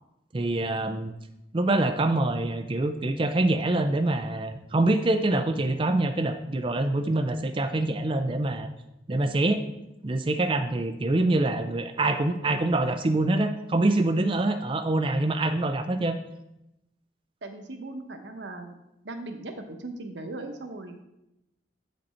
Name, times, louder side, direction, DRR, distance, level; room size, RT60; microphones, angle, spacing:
voice 1, 0.3-1.1 1.5-8.7 9.1-9.6 10.0-16.2, right 2 dB, 30° right, 6 dB, 0.5 m, -25 dB
voice 2, 17.4-18.7 19.0-21.0, right 2 dB, 90° right, 6 dB, 1.0 m, -39 dB
8.2 x 5.2 x 4.4 m, 0.88 s
head